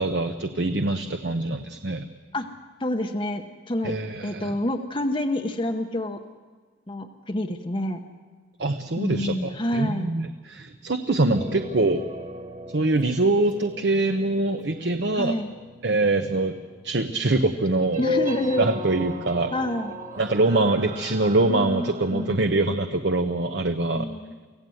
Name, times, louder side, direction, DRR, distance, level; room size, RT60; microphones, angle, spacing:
voice 1, 0.0-2.0 3.8-4.5 8.6-12.0 12.7-15.4 15.8-16.6 16.8-18.0 18.6-19.5 20.2-24.1, right 2 dB, 60° right, 7 dB, 0.9 m, -24 dB
voice 2, 2.8-3.9 4.2-6.2 6.9-8.0 9.0-10.2 11.3-11.5 15.1-15.5 18.0-18.7 19.5-19.9 21.5-22.4 23.9-24.4, left 1 dB, 25° left, 5 dB, 0.9 m, -28 dB
sound 1, 11.3-22.5, left 2 dB, 40° right, 1.7 m, -36 dB
25.0 x 16.0 x 7.8 m, 1.5 s
head